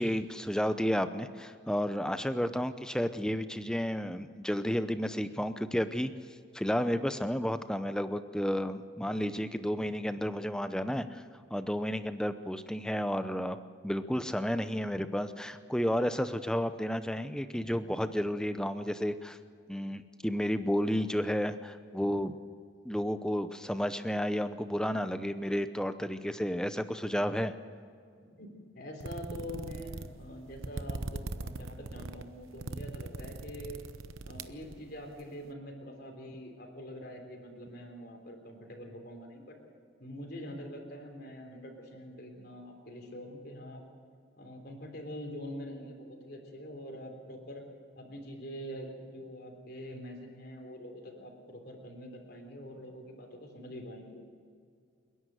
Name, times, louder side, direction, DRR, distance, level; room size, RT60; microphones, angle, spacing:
voice 1, 0.0-6.1 6.5-11.2 11.5-19.4 19.7-22.3 22.8-27.5, equal, 5° left, 11 dB, 0.7 m, -32 dB
voice 2, 28.2-33.8 34.2-39.6 40.0-43.8 44.4-47.6 48.0-54.2, equal, 50° left, 3 dB, 3.6 m, -44 dB
sound 1, 29.0-35.2, right 3 dB, 85° right, 0.9 m, -40 dB
29.0 x 11.0 x 8.1 m, 2.2 s
head